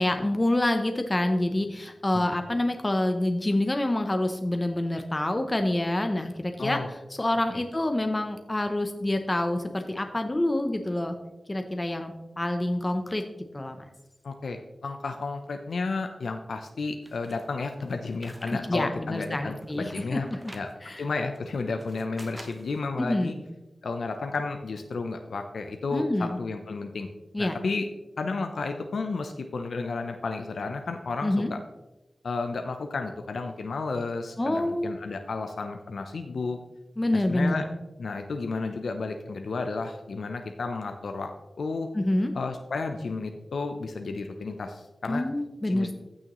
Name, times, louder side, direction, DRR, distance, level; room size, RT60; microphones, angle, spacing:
voice 1, 0.0-6.8 7.2-11.2 11.5-13.2 13.5-13.9 18.7-20.5 20.8-21.0 23.0-23.4 25.9-26.4 27.3-27.5 31.2-31.5 34.4-34.9 37.0-37.6 41.9-42.3 45.1-45.9, left 1 dB, 20° left, 6 dB, 0.7 m, -27 dB
voice 2, 6.6-6.9 7.5-7.6 14.2-20.3 20.5-20.7 21.0-23.3 23.8-27.1 27.4-27.9 28.2-31.6 32.2-36.6 37.1-37.7 38.0-41.3 41.6-41.9 42.3-45.2 45.6-45.9, left 3 dB, 90° left, 5 dB, 0.6 m, -32 dB
sound 1, 17.0-18.6 19.0-20.7 21.4-22.8, right 1 dB, 10° right, 0.9 m, -48 dB
14.5 x 6.4 x 3.0 m, 1.0 s
wide cardioid pair, 115°, 0 cm